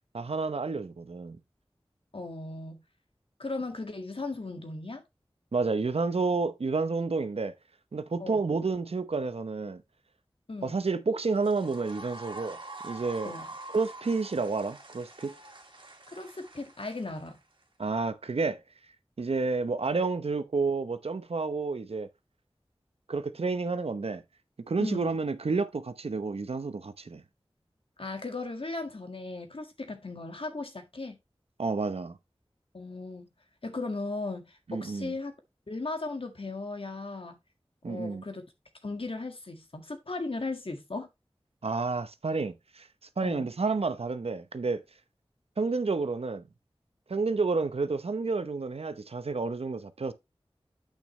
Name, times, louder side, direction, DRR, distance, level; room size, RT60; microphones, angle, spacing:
voice 1, 0.1-1.4 5.5-7.5 7.9-9.8 10.6-12.6 12.8-13.3 13.7-15.3 17.8-18.6 19.2-22.1 23.1-24.2 24.7-27.2 31.6-32.2 34.7-35.1 37.8-38.2 41.6-42.9 43.2-44.8 45.6-46.4 47.1-50.1, right 4 dB, 85° right, 0.8 m, -30 dB
voice 2, 2.1-2.8 3.4-5.0 8.2-8.4 10.5-10.8 13.3-13.5 16.1-17.4 24.8-25.1 28.0-31.2 32.7-33.3 33.6-35.3 35.7-37.4 37.9-38.4 38.8-41.1 43.2-43.5, left 3 dB, 65° left, 1.8 m, -37 dB
sound 1, 11.3-17.6, right 2 dB, 55° right, 2.0 m, -45 dB
8.5 x 6.1 x 3.1 m
wide cardioid pair, 40°, 10 cm